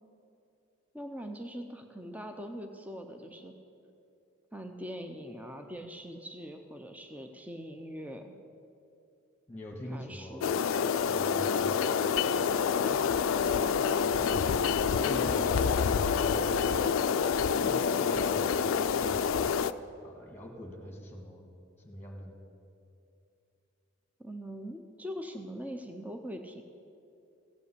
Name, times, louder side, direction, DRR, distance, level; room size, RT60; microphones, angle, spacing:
voice 1, 0.9-3.5 4.5-8.3 9.9-10.6 14.7-15.0 24.2-26.6, equal, 5° right, 5 dB, 0.5 m, -42 dB
voice 2, 9.5-10.6 11.0-11.9 14.0-16.7 17.2-19.5 20.0-21.5 21.8-22.4, equal, 10° left, 1 dB, 1.6 m, -42 dB
sound 1, 10.4-19.7, left 6 dB, 80° left, 0.4 m, -27 dB
15.5 x 5.4 x 8.3 m, 2.6 s
head